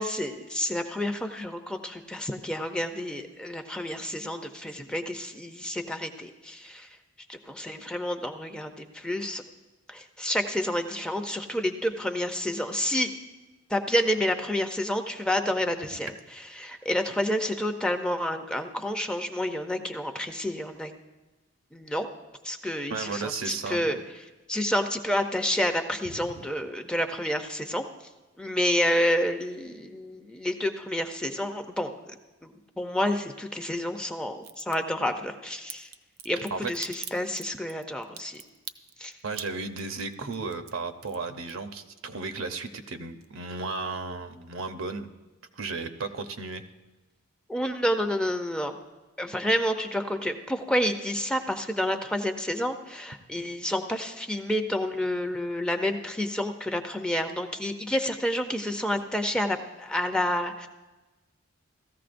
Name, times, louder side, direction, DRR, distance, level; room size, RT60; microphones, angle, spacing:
voice 1, 0.0-7.0 7.3-9.4 9.9-13.1 13.7-20.9 21.7-22.1 22.4-27.8 28.4-35.9 36.2-38.4 39.0-39.2 47.5-48.7 49.2-60.7, equal, 5° left, 5 dB, 0.5 m, -29 dB
voice 2, 22.9-23.8 36.5-36.7 39.2-45.1 45.6-46.6, right 4 dB, 75° right, 7 dB, 0.8 m, -34 dB
Crack, 34.4-34.8 35.7-41.9 42.2-42.9 43.2-43.3, right 9 dB, 50° right, 0.4 m, -43 dB
17.0 x 14.0 x 2.6 m, 1.2 s
head